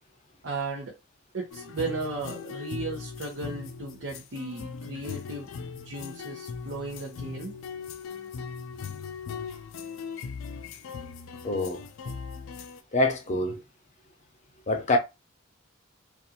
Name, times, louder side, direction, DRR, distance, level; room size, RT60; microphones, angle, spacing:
voice 1, 0.4-0.9 1.3-5.5 5.8-7.5, right 3 dB, 70° right, 0.8 m, -35 dB
sound 1, 1.5-12.8, left 5 dB, 85° left, 0.4 m, -39 dB
voice 2, 11.4-11.9 12.9-13.6 14.7-15.0, left 2 dB, 35° left, 0.6 m, -25 dB
2.5 x 2.4 x 2.7 m
head